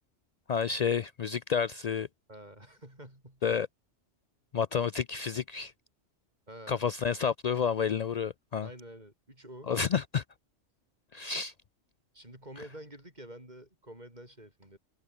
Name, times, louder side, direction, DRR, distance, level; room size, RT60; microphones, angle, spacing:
voice 1, 0.5-2.1 3.4-3.7 4.5-5.7 6.7-8.7 9.7-10.2 11.1-11.5, left 6 dB, 85° left, 0.3 m, -30 dB
voice 2, 2.3-3.4 6.5-6.8 8.6-9.7 12.1-14.8, right 1 dB, 35° right, 8.1 m, -48 dB
omnidirectional pair, 1.3 m